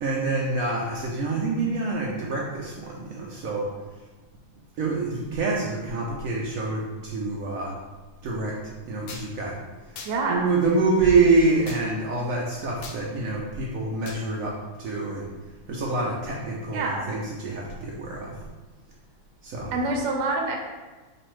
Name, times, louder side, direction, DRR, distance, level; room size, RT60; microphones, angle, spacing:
voice 1, 0.0-3.7 4.8-7.7 8.2-9.5 10.3-14.5 14.8-15.3 15.7-18.3 19.4-19.8, right 3 dB, 70° right, -3 dB, 0.9 m, -26 dB
sound 1, 9.1-9.3 10.0-10.2 11.7-11.8 12.8-13.0 14.1-14.2, left 4 dB, 85° left, 1.2 m, -39 dB
voice 2, 10.0-10.5 16.7-17.1 19.7-20.6, right 2 dB, 90° right, 1 dB, 1.2 m, -26 dB
5.2 x 2.5 x 3.1 m, 1.3 s
omnidirectional pair, 1.7 m